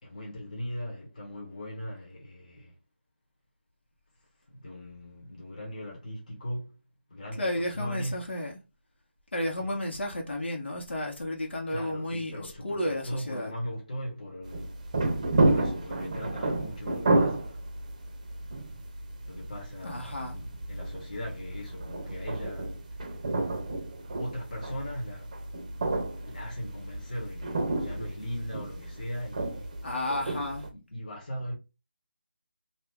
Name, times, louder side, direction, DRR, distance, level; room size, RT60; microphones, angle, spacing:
voice 1, 0.0-2.7 4.5-6.8 7.1-8.3 9.6-9.7 11.7-14.8 15.5-17.6 19.2-23.2 23.5-23.6 24.2-25.4 26.3-29.8 30.7-31.5, equal, 40° left, 1.2 m, -39 dB
voice 2, 7.4-8.6 9.3-13.5 19.8-20.4 29.8-30.7, left 1 dB, 80° left, 1.4 m, -32 dB
sound 1, 14.5-30.7, right 2 dB, 35° right, 0.7 m, -31 dB
2.7 x 2.6 x 3.5 m
figure-of-eight pair, 170°, 6 cm